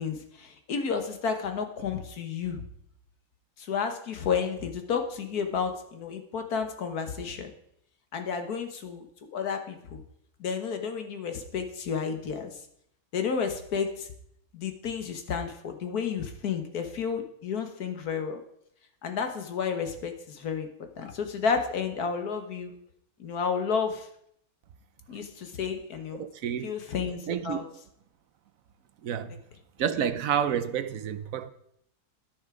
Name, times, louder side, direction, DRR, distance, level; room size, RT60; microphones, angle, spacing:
voice 1, 0.0-2.6 3.6-7.5 8.1-9.1 9.3-10.0 10.4-12.6 13.1-14.1 14.5-18.4 19.0-22.7 23.2-24.1 25.1-26.2 26.6-27.6, left 6 dB, 80° left, 1.7 m, -31 dB
voice 2, 26.2-26.7 27.3-27.6 29.0-29.3 29.8-31.5, right 8 dB, 70° right, 1.0 m, -29 dB
11.0 x 10.0 x 4.9 m
omnidirectional pair, 1.6 m